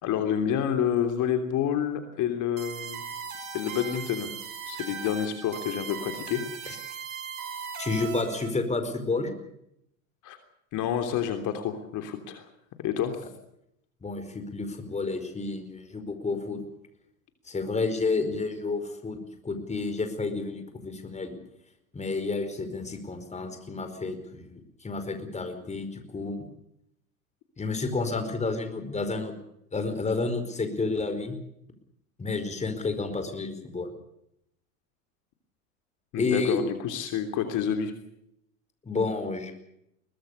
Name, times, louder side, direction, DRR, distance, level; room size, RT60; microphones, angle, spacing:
voice 1, 0.0-3.0 3.5-4.3 4.7-6.4 10.2-10.4 10.7-12.5 12.8-13.3 36.1-37.9, left 9 dB, 45° left, 7 dB, 3.3 m, -28 dB
sound 1, 2.6-8.5, right 7 dB, 80° right, 6.2 m, -38 dB
voice 2, 7.8-9.3 14.0-16.6 17.5-21.3 21.9-26.4 27.6-29.3 29.7-31.4 32.2-33.9 36.1-36.6 38.8-39.5, left 3 dB, 15° left, 8 dB, 4.9 m, -30 dB
23.0 x 19.5 x 6.8 m, 0.77 s
hypercardioid pair, 100°, 41 cm